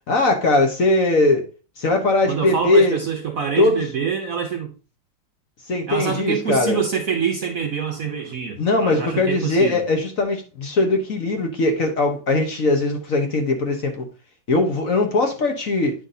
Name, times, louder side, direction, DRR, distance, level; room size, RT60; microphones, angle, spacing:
voice 1, 0.1-1.4 1.8-3.0 3.6-3.8 5.7-6.8 8.6-14.0 14.5-15.9, left 2 dB, 50° left, 1.3 m, -20 dB
voice 2, 2.3-4.7 5.9-9.8, right 6 dB, 60° right, 0.9 m, -25 dB
9.1 x 5.9 x 2.7 m
omnidirectional pair, 2.2 m